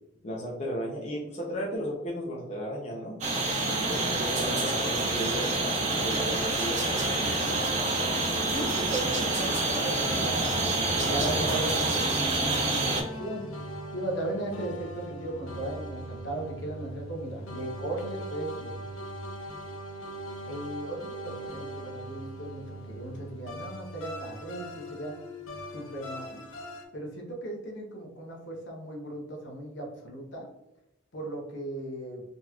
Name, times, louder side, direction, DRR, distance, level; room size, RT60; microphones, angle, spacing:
voice 1, 0.2-3.2 3.6-6.8 7.1-7.4, equal, 35° left, -3 dB, 0.6 m, -35 dB
sound 1, 3.2-13.0, right 2 dB, 35° right, 0.8 m, -27 dB
sound 2, 7.2-26.8, right 1 dB, 85° left, 0.8 m, -40 dB
voice 2, 8.2-10.5 11.0-12.1 12.4-13.5 13.9-18.7 20.4-25.1 25.7-26.4 26.9-30.5 31.1-32.2, right 1 dB, 65° left, 0 dB, 0.9 m, -37 dB
3.8 x 2.9 x 2.3 m, 0.93 s
head